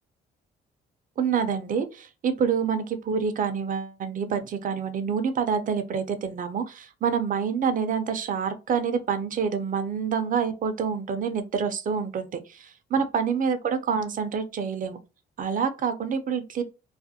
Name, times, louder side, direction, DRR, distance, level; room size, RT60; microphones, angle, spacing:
voice 1, 1.2-15.0 15.4-16.6, right 6 dB, 45° right, 0.5 m, -27 dB
2.4 x 2.0 x 2.7 m
cardioid pair, 90°, 20 cm